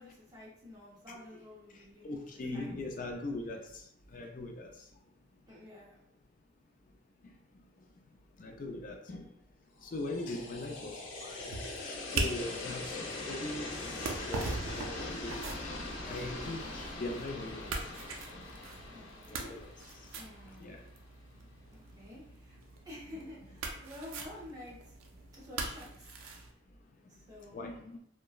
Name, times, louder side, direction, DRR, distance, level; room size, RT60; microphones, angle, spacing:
voice 1, 0.0-2.2 2.5-2.7 5.5-5.9 10.3-10.6 18.9-19.5 20.1-20.7 21.7-22.6 22.8-24.8 25.3-26.1 27.3-27.6, left 1 dB, 20° right, -6 dB, 0.8 m, -50 dB
voice 2, 1.1-1.4 1.7-5.0 7.2-9.4 9.8-15.5 15.9-20.2 20.6-20.8 21.6-22.2 26.7-28.0, left 2 dB, 40° left, 2 dB, 0.4 m, -42 dB
sound 1, 9.8-20.9, left 2 dB, 80° left, 0.7 m, -42 dB
sound 2, 10.7-26.5, right 3 dB, 90° right, 0.4 m, -42 dB
2.9 x 2.2 x 2.2 m, 0.73 s
head